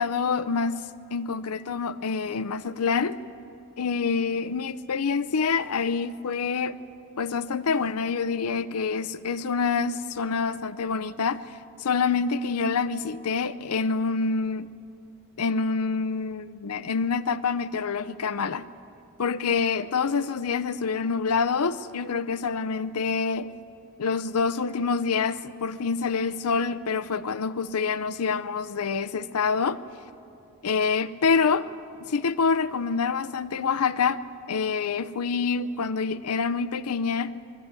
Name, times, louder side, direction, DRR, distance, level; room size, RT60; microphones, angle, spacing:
voice 1, 0.0-3.2 3.8-6.8 7.2-14.7 15.4-18.7 19.2-23.5 24.0-29.8 30.6-31.7 32.0-34.2 34.5-37.4, left 5 dB, 85° left, 15 dB, 0.6 m, -26 dB
21.0 x 13.0 x 9.7 m, 2.7 s
head